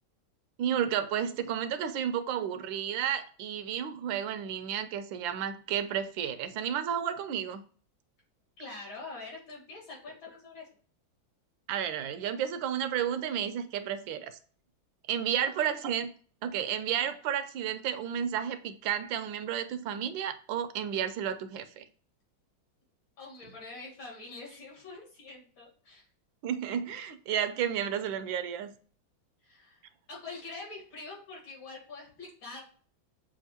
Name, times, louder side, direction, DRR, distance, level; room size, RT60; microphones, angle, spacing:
voice 1, 0.6-7.6 11.7-14.4 15.1-16.1 16.4-21.8 26.4-28.7, right 9 dB, 80° right, 1.3 m, -32 dB
voice 2, 8.6-10.6 15.6-15.8 23.2-26.1 29.4-29.8 30.1-32.6, left 3 dB, 75° left, 3.0 m, -45 dB
7.2 x 2.5 x 2.8 m
omnidirectional pair, 2.1 m